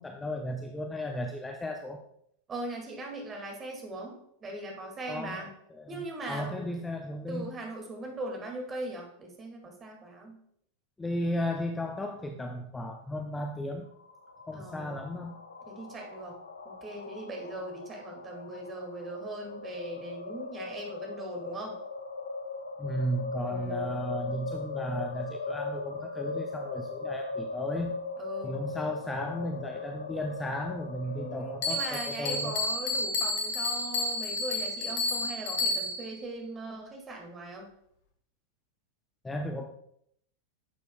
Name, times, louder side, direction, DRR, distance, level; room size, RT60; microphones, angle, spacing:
voice 1, 0.0-2.0 5.1-7.5 11.0-13.9 14.5-15.4 22.8-27.9 28.4-32.6 39.2-39.7, left 1 dB, 10° left, 4 dB, 0.6 m, -35 dB
voice 2, 2.5-5.5 5.9-6.7 7.3-10.4 14.5-15.0 15.7-16.4 16.7-21.8 23.4-23.8 28.2-28.6 31.1-37.7, right 2 dB, 20° right, 1 dB, 2.0 m, -40 dB
sound 1, 13.9-31.7, left 3 dB, 75° left, 0.6 m, -39 dB
Bell, 31.6-36.1, left 2 dB, 50° left, 1.4 m, -31 dB
11.0 x 6.8 x 2.2 m, 0.70 s
figure-of-eight pair, 90°, 0 cm